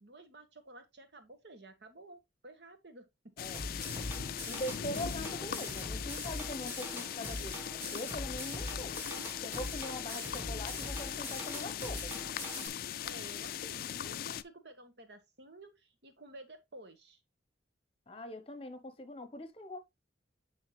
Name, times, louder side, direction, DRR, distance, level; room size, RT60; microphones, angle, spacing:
voice 1, 0.0-3.3 8.7-9.4 10.1-10.6 13.0-17.2, right 2 dB, 65° right, 1.3 m, -53 dB
sound 1, 3.4-14.4, left 9 dB, 50° left, 0.3 m, -40 dB
sound 2, 3.5-12.7, left 1 dB, 10° right, 1.6 m, -42 dB
voice 2, 4.5-7.6 7.9-9.0 9.4-12.2 18.1-19.8, left 1 dB, 30° left, 0.9 m, -42 dB
9.4 x 3.7 x 3.2 m
head